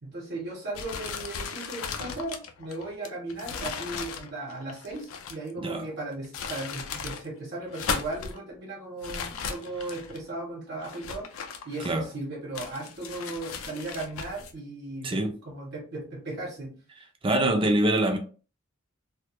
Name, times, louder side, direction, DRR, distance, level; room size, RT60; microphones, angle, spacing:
voice 1, 0.0-16.8, right 2 dB, 55° right, 0.7 m, -37 dB
sound 1, 0.7-5.5 6.1-7.2 7.6-8.4 9.0-10.2 10.8-12.1 12.5-14.5, left 5 dB, 80° left, 0.4 m, -36 dB
voice 2, 15.0-15.4 17.2-18.2, right 1 dB, 25° right, 0.4 m, -24 dB
2.1 x 2.0 x 2.8 m
head